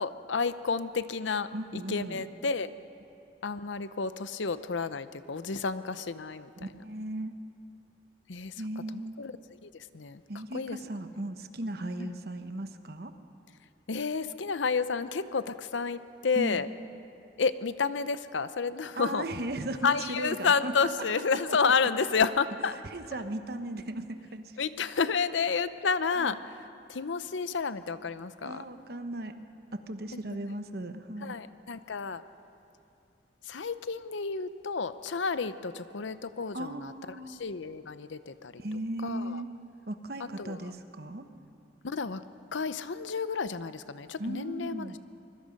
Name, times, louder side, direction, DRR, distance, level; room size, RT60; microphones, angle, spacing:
voice 1, 0.0-2.7 3.4-6.5 8.3-8.5 8.9-9.3 9.6-10.2 10.5-10.8 12.0-12.1 13.9-16.7 17.4-19.2 19.8-22.8 24.6-26.5 26.9-28.6 31.2-32.2 33.5-36.9 37.3-38.6 39.0-39.4 40.4-40.7 41.8-42.2 42.5-45.0, left 5 dB, 75° left, 13 dB, 0.7 m, -30 dB
voice 2, 1.5-2.3 6.6-7.3 8.6-9.1 10.3-13.1 16.3-16.6 18.9-20.7 21.5-21.9 22.9-24.6 26.2-26.3 28.4-29.4 29.7-31.3 36.5-37.4 38.6-39.5 39.9-41.3 44.2-45.0, right 1 dB, 55° right, 8 dB, 1.1 m, -37 dB
24.5 x 21.5 x 5.3 m, 2.6 s
head